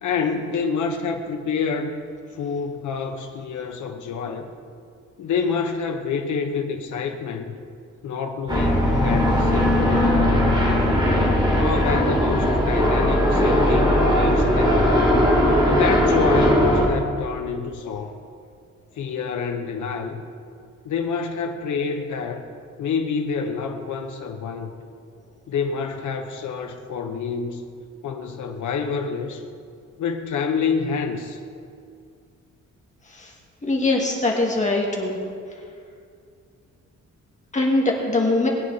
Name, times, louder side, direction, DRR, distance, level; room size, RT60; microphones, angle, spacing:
voice 1, 0.0-2.0 2.3-4.5 5.2-7.6 8.0-10.8 11.6-14.9 15.6-18.1 18.9-20.2 20.8-22.4 22.8-24.7 25.5-27.6 28.0-29.4 30.0-31.4, left 5 dB, 80° left, 3 dB, 1.0 m, -27 dB
sound 1, 8.5-16.8, equal, 15° right, 2.8 m, -19 dB
voice 2, 33.6-35.2 37.5-38.5, left 2 dB, 25° left, -1 dB, 2.0 m, -22 dB
20.5 x 9.7 x 4.2 m, 2.3 s
wide cardioid pair, 155°, 30 cm